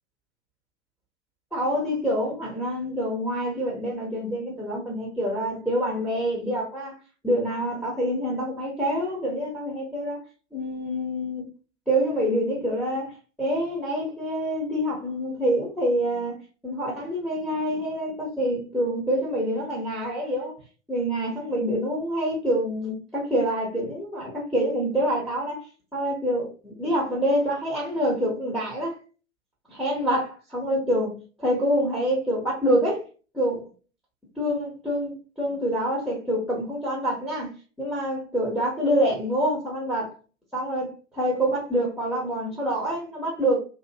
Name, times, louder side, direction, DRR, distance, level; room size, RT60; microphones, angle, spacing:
voice 1, 1.5-6.9 7.2-10.2 10.5-11.4 11.9-13.1 13.4-16.4 16.6-20.5 20.9-25.7 25.9-29.0 29.7-31.1 31.4-33.0 33.3-33.7 34.4-40.1 40.5-43.6, equal, ahead, 0.7 m, -26 dB
2.5 x 2.0 x 2.7 m
figure-of-eight pair, 100°, 38 cm